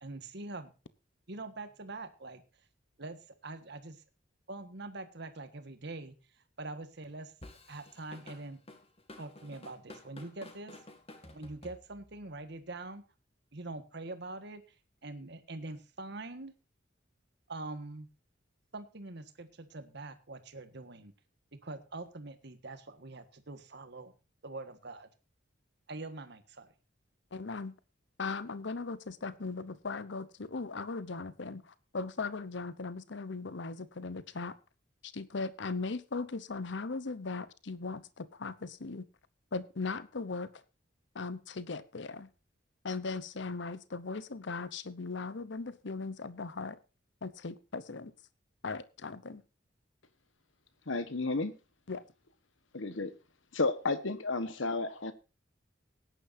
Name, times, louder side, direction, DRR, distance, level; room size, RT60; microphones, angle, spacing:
voice 1, 0.0-0.7 1.3-2.4 3.0-4.0 4.5-7.3 7.7-8.6 9.2-10.8 11.3-13.0 13.5-14.8 15.0-16.5 17.5-18.1 18.7-21.1 21.5-24.1 24.4-25.1 25.9-26.7, right 2 dB, 60° right, 1.6 m, -44 dB
Drum kit / Drum, 7.4-12.2, left 1 dB, 30° left, 2.2 m, -51 dB
voice 2, 27.3-27.7 28.2-34.6 35.0-39.1 39.5-40.6 41.1-42.3 42.8-46.8 47.2-48.1 48.6-49.4 51.9-52.0, left 4 dB, 65° left, 0.8 m, -38 dB
voice 3, 50.9-51.6 52.7-53.1 53.5-55.1, left 3 dB, 85° left, 1.3 m, -32 dB
19.0 x 10.0 x 2.7 m
head